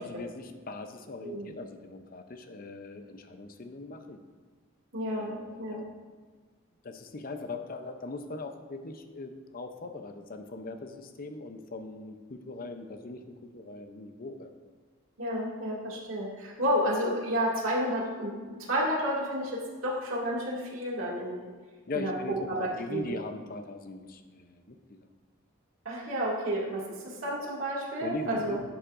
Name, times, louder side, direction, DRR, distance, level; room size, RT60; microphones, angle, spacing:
voice 1, 0.0-4.2 5.1-5.8 6.8-14.5 21.9-25.0 28.0-28.6, left 2 dB, 45° left, 7 dB, 0.6 m, -40 dB
voice 2, 4.9-5.8 15.2-19.5 19.8-21.5 21.9-23.0 25.8-28.6, equal, 75° right, -5 dB, 2.2 m, -31 dB
11.5 x 7.3 x 2.6 m, 1.4 s
head